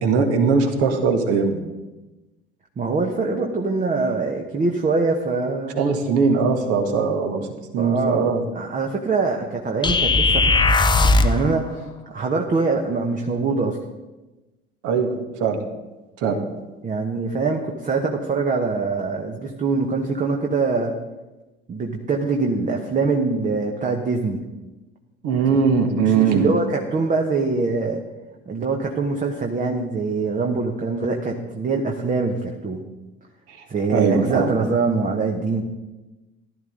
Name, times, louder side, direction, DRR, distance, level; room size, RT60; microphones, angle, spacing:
voice 1, 0.0-1.6 5.8-7.5 7.7-8.4 14.8-15.1 15.4-15.6 16.2-16.4 25.2-26.5 33.5-33.6 33.9-34.5, right 5 dB, 50° right, 5 dB, 1.9 m, -20 dB
voice 2, 2.8-5.8 7.8-8.3 8.5-10.7 11.2-13.8 16.8-20.9 21.7-24.4 26.0-28.0 28.5-32.8 33.7-35.6, right 4 dB, 25° right, 2 dB, 1.3 m, -23 dB
sound 1, 9.8-11.4, left 3 dB, 15° left, 0.7 m, -17 dB
15.5 x 12.0 x 4.0 m, 1.1 s
figure-of-eight pair, 60°, 30 cm